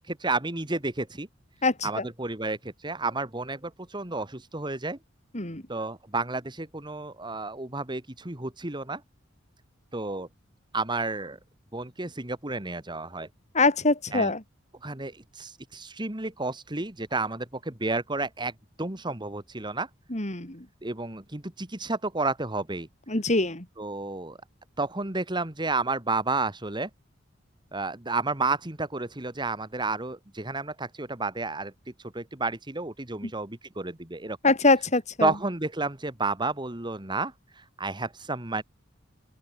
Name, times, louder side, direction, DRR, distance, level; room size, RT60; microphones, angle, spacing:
voice 1, 0.1-1.3 1.8-5.0 5.7-9.0 9.9-10.3 10.7-11.4 11.7-13.3 14.1-14.3 14.8-18.5 18.8-19.9 20.8-22.9 23.8-24.4 24.8-26.9 27.7-31.7 32.1-34.4 35.2-38.6, right 3 dB, 25° right, 2.1 m, -31 dB
voice 2, 1.6-2.1 5.3-5.6 13.5-14.4 20.1-20.7 23.1-23.7 33.2-33.3 34.4-35.3, left 3 dB, 35° left, 4.4 m, -24 dB
open air
head